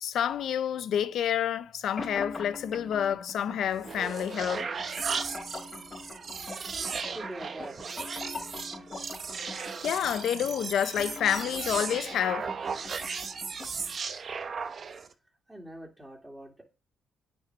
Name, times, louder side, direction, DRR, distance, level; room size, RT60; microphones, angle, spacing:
voice 1, 0.0-4.8 9.5-12.5, left 9 dB, 70° left, 0.8 m, -29 dB
sound 1, 2.0-14.0, left 3 dB, 35° left, 3.0 m, -44 dB
sound 2, 3.7-15.1, right 5 dB, 45° right, 1.0 m, -36 dB
voice 2, 7.1-8.0 15.5-16.6, right 1 dB, 10° right, 2.7 m, -43 dB
8.9 x 6.5 x 6.1 m
cardioid pair, 90°, 0 cm